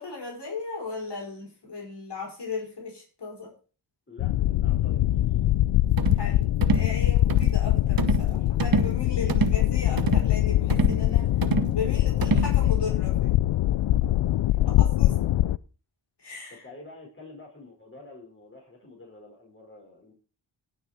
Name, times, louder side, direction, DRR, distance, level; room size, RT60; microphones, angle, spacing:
voice 1, 0.0-3.5 6.1-13.4 14.8-15.1 16.2-16.6, left 4 dB, 55° left, -1 dB, 5.4 m, -36 dB
voice 2, 4.1-5.3 14.6-14.7 16.6-20.1, left 2 dB, 25° left, -1 dB, 4.8 m, -48 dB
sound 1, 4.2-15.6, left 14 dB, 80° left, 0.5 m, -23 dB
sound 2, 6.0-6.2 6.6-6.9 7.3-7.5 8.0-8.3 8.6-9.0 9.3-9.6 10.0-10.3 10.7-11.0 11.4-11.7 12.2-12.5, right 6 dB, 45° right, 1.1 m, -26 dB
17.5 x 6.2 x 4.3 m, 0.37 s
cardioid pair, 45°, 47 cm